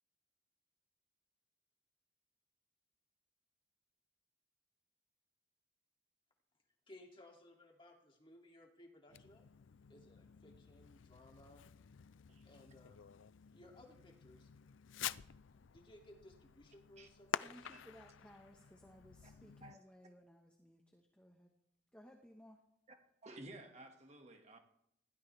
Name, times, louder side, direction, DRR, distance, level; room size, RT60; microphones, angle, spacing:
voice 1, 6.9-9.5 9.9-11.6 12.4-13.0 13.5-14.5 15.7-17.6, left 1 dB, 25° left, 2.7 m, -60 dB
Fireworks, 9.1-19.8, left 9 dB, 90° left, 0.5 m, -49 dB
voice 2, 17.4-21.5 21.9-22.6, equal, 5° left, 1.3 m, -60 dB
voice 3, 23.2-24.6, right 2 dB, 35° right, 2.0 m, -54 dB
20.5 x 16.5 x 3.5 m
head